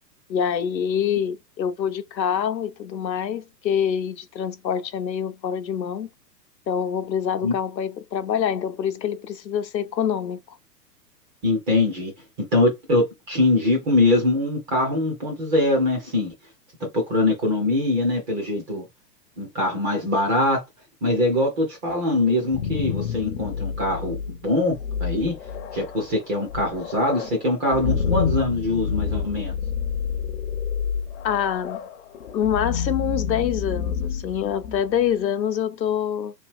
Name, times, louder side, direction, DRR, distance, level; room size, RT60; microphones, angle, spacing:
voice 1, 0.3-6.1 6.7-10.6 31.2-31.8 32.3-36.3, left 8 dB, 85° left, 0.7 m, -25 dB
voice 2, 11.4-12.1 12.5-16.3 16.8-18.9 19.4-20.6 21.0-25.3 25.7-29.5, left 2 dB, 10° right, 0.4 m, -23 dB
sound 1, 22.3-35.1, left 7 dB, 45° left, 0.6 m, -29 dB
2.9 x 2.4 x 3.4 m
hypercardioid pair, 120°, 50 cm